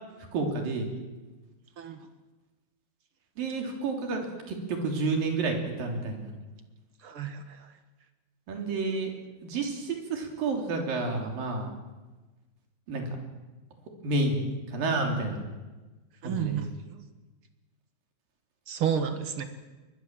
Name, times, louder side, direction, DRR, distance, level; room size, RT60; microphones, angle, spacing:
voice 1, 0.3-0.9 3.4-4.2 4.5-6.3 8.5-9.1 9.4-11.7 12.9-13.1 14.0-15.4 16.2-16.6, right 3 dB, 75° right, 3 dB, 5.0 m, -30 dB
voice 2, 7.0-7.6 16.2-17.0 18.7-19.5, right 8 dB, 50° right, 8 dB, 1.8 m, -31 dB
22.5 x 21.0 x 7.5 m, 1.2 s
omnidirectional pair, 4.1 m